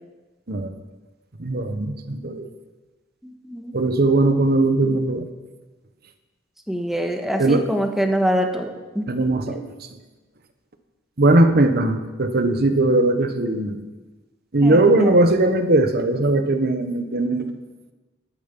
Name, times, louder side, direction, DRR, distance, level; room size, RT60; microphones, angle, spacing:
voice 1, 1.4-2.5 3.7-5.2 7.4-7.6 9.1-9.7 11.2-13.8 14.5-17.6, right 2 dB, 55° right, 8 dB, 1.1 m, -19 dB
voice 2, 3.2-3.7 6.7-8.7 8.9-9.1 9.5-9.6 14.6-15.1, equal, ahead, 3 dB, 1.4 m, -24 dB
13.5 x 10.5 x 5.4 m, 1.2 s
head